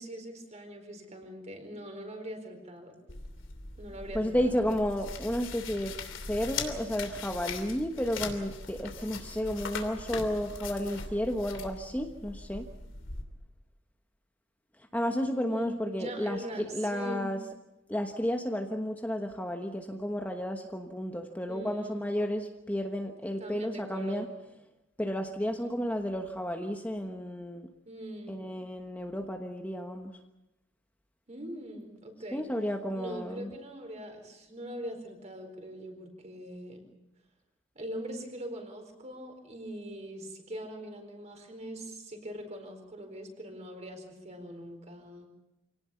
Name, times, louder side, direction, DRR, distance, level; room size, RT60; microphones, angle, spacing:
voice 1, 0.0-3.0 3.8-4.7 15.5-17.3 21.5-22.1 23.4-24.4 25.4-25.8 27.9-28.6 31.3-32.4 32.9-36.8 37.7-45.3, equal, 35° right, 4 dB, 4.4 m, -42 dB
sound 1, 3.1-13.2, left 4 dB, 85° left, 3.0 m, -41 dB
voice 2, 4.1-6.0 6.3-12.7 14.9-17.4 17.9-24.3 25.0-27.7 28.3-30.1 32.3-33.5, equal, 10° left, 3 dB, 1.2 m, -32 dB
26.0 x 18.0 x 7.1 m, 0.94 s
head